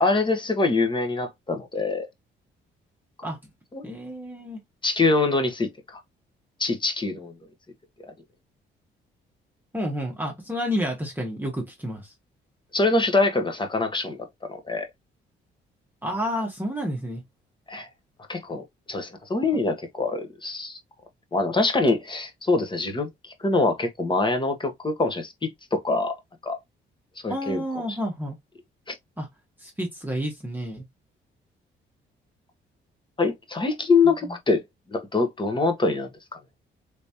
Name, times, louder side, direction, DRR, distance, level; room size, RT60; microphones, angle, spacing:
voice 1, 0.0-2.1 3.7-3.9 4.8-6.0 6.6-7.3 12.7-14.9 17.7-17.9 18.3-20.8 21.3-25.3 25.7-26.1 26.4-26.6 27.2-27.6 27.9-28.0 33.2-34.6 34.9-36.1, left 3 dB, 25° left, 1.1 m, -24 dB
voice 2, 3.8-4.6 9.7-12.1 16.0-17.2 19.5-19.6 27.3-28.4 29.2-29.3 29.6-30.8 34.0-34.4, equal, 10° right, 1.1 m, -30 dB
3.4 x 3.0 x 2.7 m
cardioid pair, 90°, 20 cm